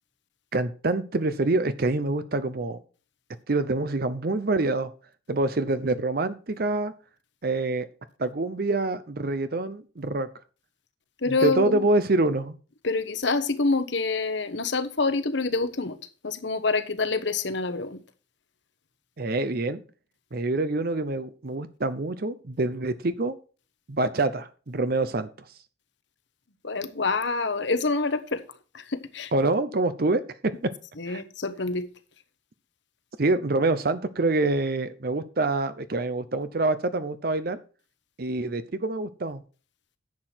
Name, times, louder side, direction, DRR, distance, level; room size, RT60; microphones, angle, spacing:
voice 1, 0.5-2.8 3.5-4.9 5.3-6.9 7.4-7.9 8.2-10.3 11.3-12.5 19.2-19.8 20.3-23.4 23.9-25.3 29.3-30.7 31.1-31.2 33.2-37.6 38.2-39.4, right 2 dB, 55° right, 0.7 m, -26 dB
voice 2, 11.2-11.8 12.8-16.0 16.2-18.0 26.6-28.4 28.7-29.3 31.0-31.9, left 3 dB, 70° left, 1.1 m, -26 dB
10.5 x 7.8 x 4.4 m
head